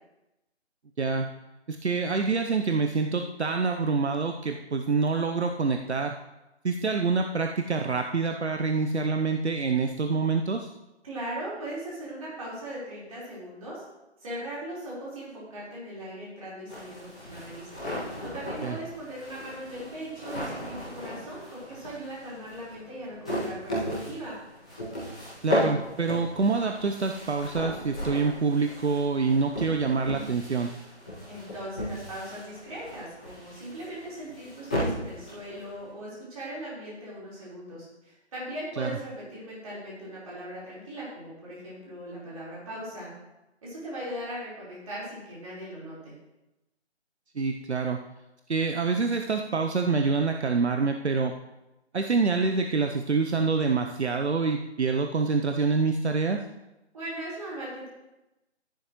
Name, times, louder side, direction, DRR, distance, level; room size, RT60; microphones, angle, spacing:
voice 1, 1.0-1.3 1.7-6.1 6.6-10.7 18.6-18.8 25.4-30.7 38.8-38.9 47.4-48.0 48.5-51.3 51.9-56.4, right 4 dB, 70° right, 5 dB, 0.8 m, -26 dB
voice 2, 11.0-13.8 14.2-17.7 18.2-24.4 31.3-43.1 43.6-46.1 56.9-57.9, right 1 dB, 30° right, -7 dB, 4.2 m, -39 dB
sound 1, 16.7-35.9, left 1 dB, 5° left, 0.8 m, -35 dB
12.0 x 10.5 x 3.1 m, 0.97 s
figure-of-eight pair, 160°, 35 cm